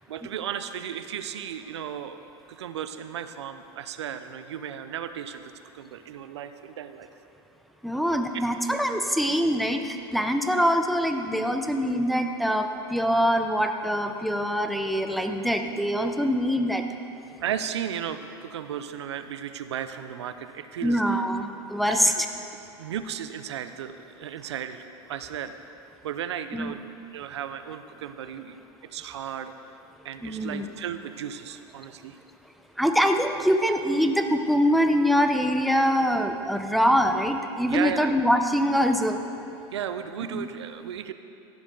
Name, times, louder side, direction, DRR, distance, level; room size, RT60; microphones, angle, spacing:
voice 1, 0.1-5.4 5.7-7.1 17.4-21.2 21.9-22.2 22.8-24.8 25.1-25.6 26.0-26.8 27.1-28.6 28.9-29.5 30.0-32.2 37.7-38.1 39.7-41.1, right 9 dB, 85° right, 10 dB, 0.6 m, -35 dB
voice 2, 7.8-16.8 20.8-22.1 26.5-26.7 30.2-30.7 32.8-39.2 40.3-40.5, equal, ahead, 5 dB, 0.8 m, -24 dB
14.5 x 11.0 x 3.9 m, 2.7 s
hypercardioid pair, 95°, 14 cm